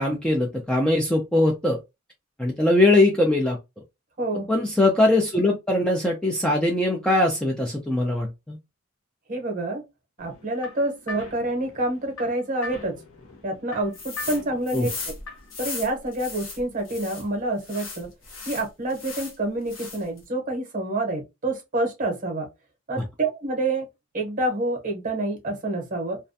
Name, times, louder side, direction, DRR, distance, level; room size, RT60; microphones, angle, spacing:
voice 1, 0.0-1.8 2.4-3.6 4.5-8.6 14.7-14.9 23.0-23.1, left 2 dB, 5° left, 0.3 m, -21 dB
voice 2, 4.2-4.5 9.3-9.8 10.2-13.0 13.4-14.9 15.6-18.1 18.5-22.5 22.9-23.8 24.1-26.2, right 2 dB, 40° right, 0.8 m, -27 dB
sound 1, 10.2-15.6, left 2 dB, 90° left, 0.7 m, -42 dB
sound 2, 13.9-14.4 14.7-17.2 17.6-19.4 19.7-20.2, left 4 dB, 65° left, 0.9 m, -37 dB
2.3 x 2.1 x 2.6 m
head